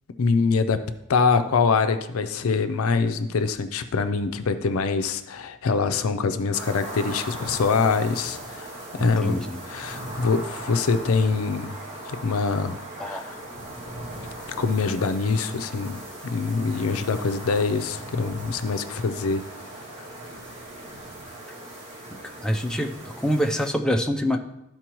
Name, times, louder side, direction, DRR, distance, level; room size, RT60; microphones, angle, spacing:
voice 1, 0.2-0.8 1.1-8.7 9.0-11.8 12.1-13.4 14.6-19.4 20.0-20.1, left 4 dB, 75° left, 10 dB, 0.5 m, -24 dB
sound 1, 6.5-23.7, right 1 dB, 25° right, 2.2 m, -38 dB
voice 2, 9.2-9.7 13.0-13.2 22.4-24.4, equal, 5° left, 2 dB, 0.4 m, -25 dB
12.5 x 4.4 x 3.0 m, 0.87 s
head